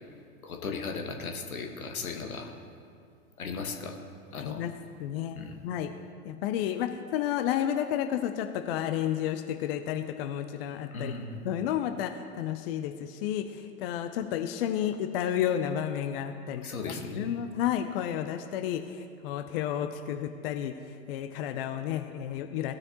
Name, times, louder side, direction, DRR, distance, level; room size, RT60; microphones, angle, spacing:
voice 1, 0.4-2.5 3.4-4.0 4.3-4.7 5.3-5.6 10.9-11.4 16.6-17.3, left 4 dB, 80° left, 3 dB, 1.3 m, -36 dB
voice 2, 4.4-4.7 5.0-5.4 5.6-5.9 6.2-11.2 11.4-16.7 17.2-20.7 21.1-22.7, left 10 dB, 45° left, 8 dB, 0.5 m, -31 dB
16.5 x 6.4 x 2.9 m, 2.3 s
figure-of-eight pair, 105°, 42 cm